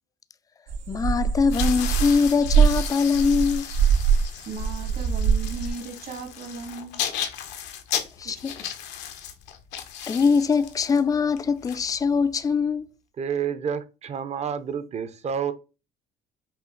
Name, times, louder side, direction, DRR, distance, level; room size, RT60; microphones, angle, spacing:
sound 1, 0.7-4.3 4.5-5.7, right 7 dB, 90° right, 1.1 m, -22 dB
voice 1, 0.9-3.7 8.2-8.7 10.1-12.9, left 5 dB, 20° left, 0.3 m, -22 dB
sound 2, 1.4-12.5, left 9 dB, 90° left, 0.9 m, -35 dB
voice 2, 4.5-7.0 8.2-8.4, right 5 dB, 60° right, 1.8 m, -37 dB
voice 3, 13.2-15.5, right 7 dB, 40° right, 0.7 m, -29 dB
5.7 x 2.4 x 3.8 m
cardioid pair, 110°, 17 cm